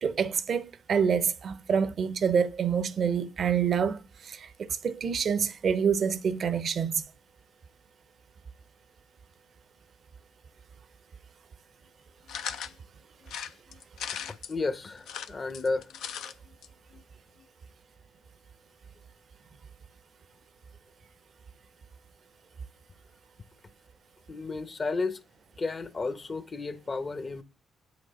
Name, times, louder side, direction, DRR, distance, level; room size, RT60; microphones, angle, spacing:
voice 1, 0.0-7.1, right 7 dB, 60° right, 0.6 m, -27 dB
sound 1, 12.3-12.8 13.3-14.5 15.0-16.3 16.6-16.7 16.9-17.0, left 8 dB, 80° left, 0.4 m, -38 dB
voice 2, 14.5-15.9 24.3-25.2 25.6-27.4, left 3 dB, 45° left, 0.8 m, -32 dB
7.9 x 3.0 x 4.1 m
supercardioid pair, 50°, 0 cm